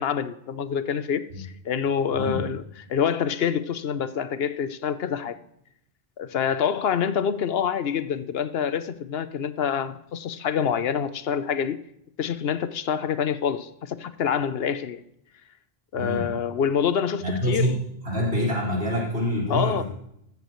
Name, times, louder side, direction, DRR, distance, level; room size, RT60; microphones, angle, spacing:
voice 1, 0.0-2.6 2.9-5.4 6.2-11.8 12.2-15.0 15.9-17.6 19.5-19.8, left 7 dB, 70° left, 0.9 m, -26 dB
voice 2, 2.1-2.4 15.9-16.3 17.2-17.8 18.0-19.8, equal, 80° right, 5.0 m, -26 dB
15.0 x 14.0 x 3.1 m
omnidirectional pair, 1.1 m